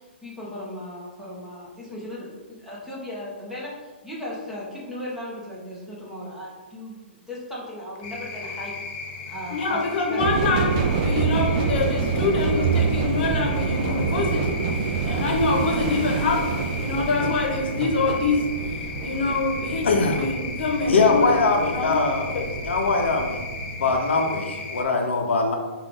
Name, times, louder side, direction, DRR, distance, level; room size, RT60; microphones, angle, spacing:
voice 1, 0.0-7.0 7.3-8.8 9.3-9.8 10.1-10.2, left 1 dB, 5° right, -6 dB, 1.1 m, -37 dB
sound 1, 8.0-24.8, left 4 dB, 35° left, 0.7 m, -36 dB
voice 2, 9.5-14.6 15.0-18.4 19.0-19.9 20.2-22.5, left 3 dB, 60° left, 1 dB, 1.0 m, -25 dB
sound 2, 10.2-24.0, right 5 dB, 40° right, 0.4 m, -27 dB
voice 3, 19.8-20.2 20.9-22.3 22.6-23.4 23.8-25.6, left 3 dB, 80° left, 2 dB, 0.7 m, -21 dB
5.4 x 2.6 x 3.4 m, 1.3 s
hypercardioid pair, 145°, 6 cm